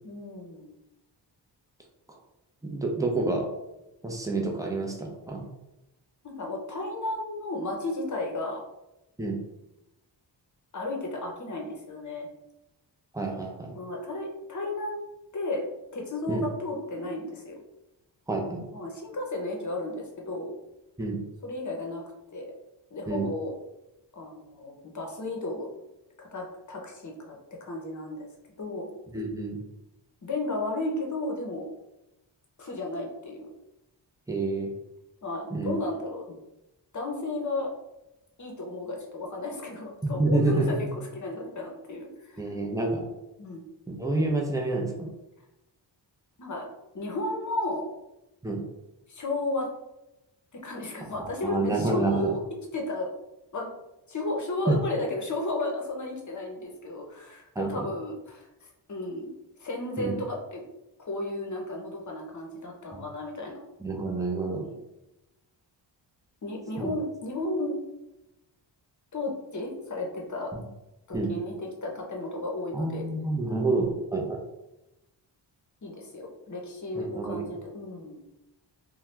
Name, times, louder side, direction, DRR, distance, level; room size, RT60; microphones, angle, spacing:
voice 1, 0.0-0.7 6.2-8.6 10.7-12.3 13.7-15.0 15.3-15.6 15.9-17.6 18.7-20.5 21.4-22.0 22.3-22.5 22.9-23.5 24.1-25.7 26.2-28.3 28.6-28.9 30.2-31.7 32.6-33.5 35.2-36.4 36.9-37.7 38.4-42.5 43.4-43.6 46.4-46.7 46.9-47.8 49.1-49.7 50.5-52.4 52.7-53.1 53.5-53.7 54.1-59.3 59.6-60.6 61.0-63.6 64.5-64.8 66.4-67.8 69.1-70.5 71.1-73.1 73.4-74.0 75.8-78.2, left 2 dB, 40° left, 0 dB, 0.8 m, -33 dB
voice 2, 2.6-3.5 4.0-5.4 9.2-9.4 13.1-13.8 16.3-16.4 18.3-18.7 21.0-21.2 23.1-23.3 29.1-29.6 34.3-34.7 35.5-35.8 40.0-40.9 42.4-43.1 43.9-45.1 48.4-48.6 51.4-52.3 54.7-54.8 57.6-57.9 60.0-60.1 62.9-63.0 63.8-64.6 66.8-66.9 71.1-71.3 72.7-73.8 74.1-74.4 76.9-77.4, right 2 dB, 10° right, 0 dB, 0.6 m, -28 dB
2.7 x 2.3 x 3.3 m, 0.93 s
cardioid pair, 75°, 45 cm